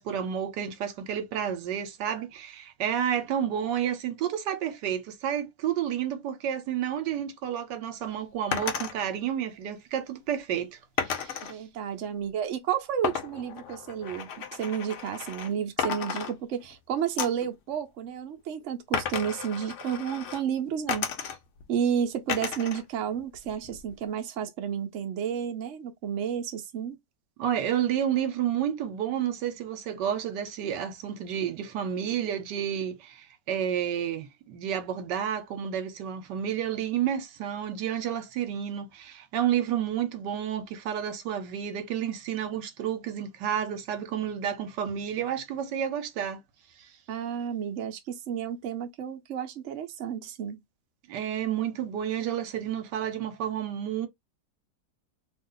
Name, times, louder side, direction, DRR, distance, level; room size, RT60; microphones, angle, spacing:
voice 1, 0.0-11.5 27.4-46.4 51.1-54.1, right 9 dB, 75° right, 1.3 m, -30 dB
sound 1, 8.5-8.9 11.0-11.5 13.0-15.5 15.8-16.8 17.2-17.5 18.9-20.4 20.9-21.6 22.3-22.8 23.2-24.0, left 7 dB, 65° left, 0.8 m, -33 dB
voice 2, 11.4-21.4 21.7-27.0 47.1-50.6, right 8 dB, 55° right, 0.9 m, -31 dB
2.9 x 2.4 x 3.7 m
omnidirectional pair, 1.9 m